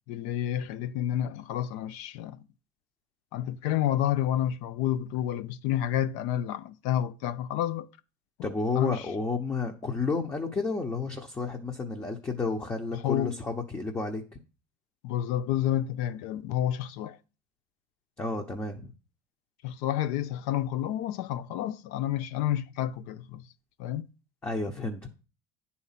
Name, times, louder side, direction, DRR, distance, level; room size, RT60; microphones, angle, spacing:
voice 1, 0.1-2.4 3.3-7.9 8.4-9.1 12.9-13.3 15.0-17.2 19.6-23.5 23.8-24.1, left 11 dB, 75° left, 0.7 m, -30 dB
voice 2, 8.4-14.2 18.2-18.9 24.4-25.1, left 4 dB, 20° left, 1.1 m, -31 dB
9.8 x 4.2 x 5.8 m
supercardioid pair, 120°, 13 cm